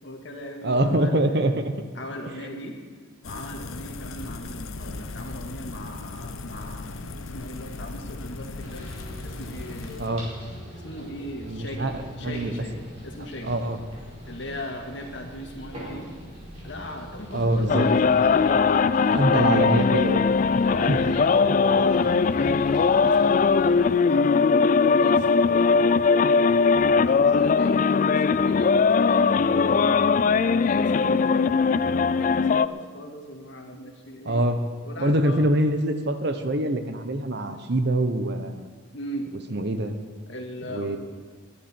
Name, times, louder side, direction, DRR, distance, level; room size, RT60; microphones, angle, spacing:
voice 1, 0.0-1.2 1.9-2.8 3.2-8.8 9.2-10.0 10.7-13.6 14.3-16.1 16.6-19.4 20.6-30.2 30.4-34.5 34.8-35.5 38.9-39.3 40.3-41.0, left 1 dB, 60° left, 2 dB, 1.9 m, -38 dB
voice 2, 0.6-1.7 10.0-10.3 11.5-11.9 12.2-12.6 13.4-13.8 17.3-17.9 19.1-20.3 20.9-21.0 34.2-34.6 35.0-38.7 39.5-39.9 40.7-41.0, right 1 dB, 55° right, 8 dB, 1.0 m, -24 dB
sound 1, 3.2-10.1, left 3 dB, 90° left, 0.9 m, -37 dB
sound 2, 8.6-23.9, equal, 30° right, 4.6 m, -42 dB
sound 3, 17.7-32.7, left 5 dB, 40° left, 0.3 m, -20 dB
20.5 x 11.0 x 4.5 m, 1.5 s
head